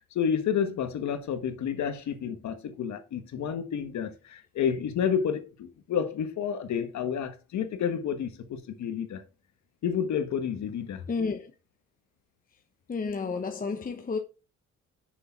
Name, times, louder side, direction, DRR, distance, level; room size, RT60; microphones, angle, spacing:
voice 1, 0.0-9.2 9.8-11.0, left 8 dB, 70° left, 1.3 m, -30 dB
voice 2, 11.1-11.5 12.9-14.2, left 4 dB, 30° left, 0.9 m, -31 dB
6.5 x 5.9 x 3.6 m
cardioid pair, 90°, 30 cm